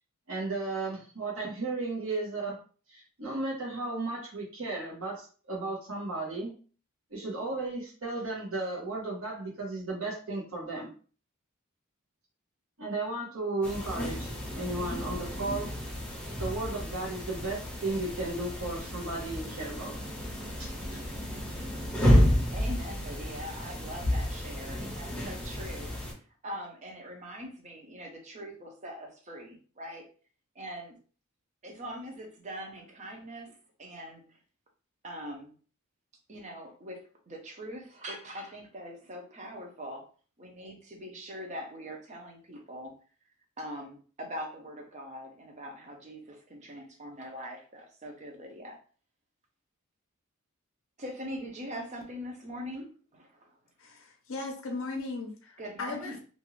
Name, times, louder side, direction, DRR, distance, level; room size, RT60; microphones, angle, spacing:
voice 1, 0.3-2.6 2.9-6.5 7.1-10.9 12.8-15.7 16.4-20.0 20.6-21.0, right 2 dB, 65° right, -3 dB, 1.0 m, -34 dB
sound 1, 13.6-26.1, equal, 5° left, 0.7 m, -31 dB
voice 2, 22.5-30.1 30.5-31.0 31.6-34.4 35.0-35.5 36.3-40.0 40.4-42.9 43.6-48.8 51.0-53.6 55.6-56.2, equal, 35° right, 1 dB, 0.7 m, -42 dB
voice 3, 53.8-56.1, left 3 dB, 60° left, 2 dB, 0.5 m, -37 dB
2.6 x 2.4 x 3.1 m, 0.39 s
head